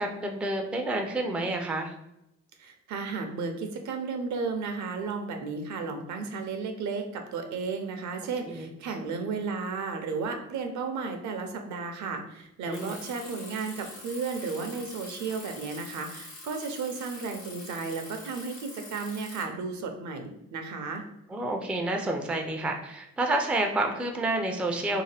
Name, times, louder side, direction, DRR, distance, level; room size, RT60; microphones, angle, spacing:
voice 1, 0.0-1.9 8.5-8.7 12.7-13.0 21.3-25.0, right 2 dB, 5° right, 3 dB, 0.3 m, -29 dB
voice 2, 2.6-21.0, right 4 dB, 70° right, 5 dB, 0.6 m, -34 dB
Bicycle, 12.7-19.4, left 2 dB, 90° left, 1.0 m, -45 dB
2.7 x 2.1 x 3.2 m, 0.85 s
cardioid pair, 90°, 30 cm